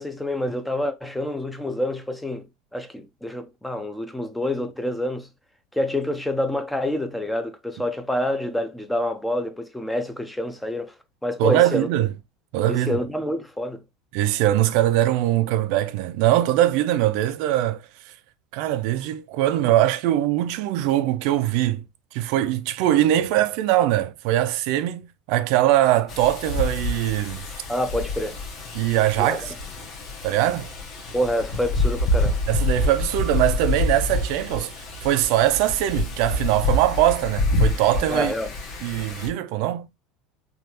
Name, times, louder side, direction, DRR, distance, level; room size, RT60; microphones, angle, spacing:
voice 1, 0.0-2.5 2.7-5.3 5.7-10.9 11.2-11.9 12.7-13.8 27.7-28.4 29.2-29.4 31.1-32.4 38.1-38.5, left 1 dB, 5° left, 0.4 m, -27 dB
voice 2, 11.4-12.1 12.5-13.0 14.1-18.1 18.5-21.8 22.1-27.5 28.7-29.5 30.2-30.7 32.5-34.7 35.0-38.3 38.8-39.9, right 13 dB, 65° right, 0.3 m, -22 dB
Wind, 26.1-39.3, left 2 dB, 40° left, 0.9 m, -27 dB
3.4 x 2.4 x 2.8 m
supercardioid pair, 145°, 0 cm